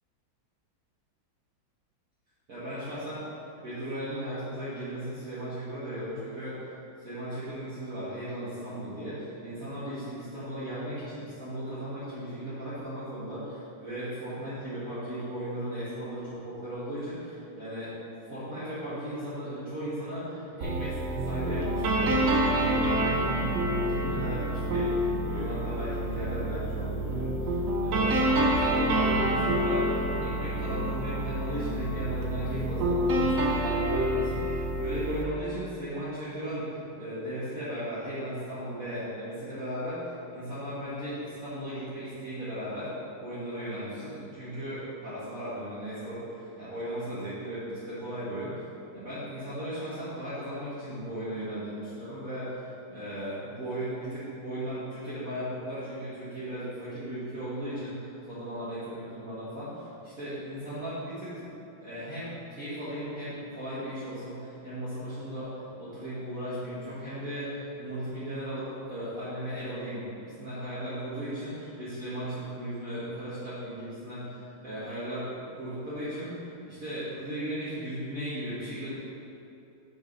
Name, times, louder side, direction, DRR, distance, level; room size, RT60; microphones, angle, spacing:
voice 1, 2.5-3.3 3.6-6.6 7.0-17.9 18.2-42.9 43.2-48.7 48.9-61.5 61.8-78.9, equal, 45° right, -12 dB, 1.8 m, -36 dB
sound 1, 20.6-35.2, right 1 dB, 60° right, 0.9 m, -27 dB
6.0 x 5.5 x 5.3 m, 2.8 s
omnidirectional pair, 2.3 m